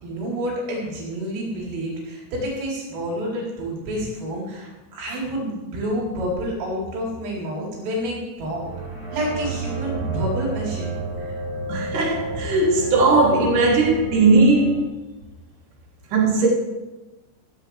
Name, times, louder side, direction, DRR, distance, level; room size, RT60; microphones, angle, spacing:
voice 1, 0.0-8.7 9.1-10.9 11.2-11.3, equal, 90° right, 7.0 m, -28 dB
sound 1, 8.5-14.8, right 3 dB, 65° right, 6.1 m, -31 dB
voice 2, 11.7-14.9 16.1-16.5, right 3 dB, 45° right, 4.5 m, -18 dB
16.5 x 16.0 x 3.5 m
omnidirectional pair, 5.7 m